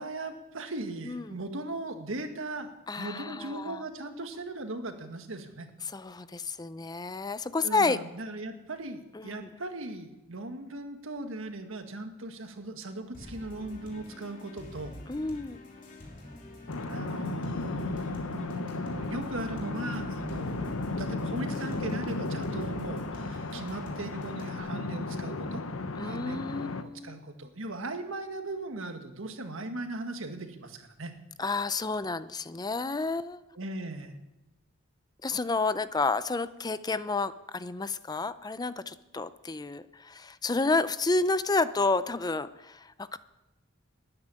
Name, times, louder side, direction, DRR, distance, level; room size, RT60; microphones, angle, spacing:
voice 1, 0.0-5.7 7.6-14.9 16.8-25.6 26.0-26.4 26.8-31.1 33.6-34.1, right 2 dB, 70° right, 6 dB, 1.8 m, -38 dB
voice 2, 1.0-1.4 2.9-3.8 5.9-8.0 9.1-9.5 15.1-15.6 26.0-27.2 31.4-33.4 35.2-43.2, left 3 dB, 20° left, 14 dB, 0.5 m, -30 dB
sound 1, 13.1-24.6, left 1 dB, 40° left, 3.2 m, -46 dB
sound 2, 16.7-26.8, left 2 dB, 85° left, 1.0 m, -34 dB
12.5 x 9.9 x 10.0 m, 1.0 s
head